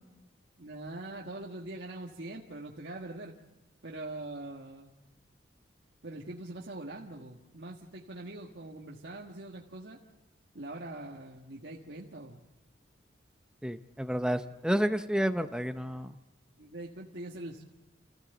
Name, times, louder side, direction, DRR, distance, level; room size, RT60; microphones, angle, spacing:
voice 1, 0.6-3.3 3.8-4.9 6.0-10.0 10.5-12.4 16.6-17.6, right 2 dB, 65° right, -1 dB, 1.5 m, -43 dB
voice 2, 13.6-16.1, equal, 5° right, 9 dB, 0.7 m, -30 dB
28.5 x 15.5 x 7.9 m, 1.1 s
head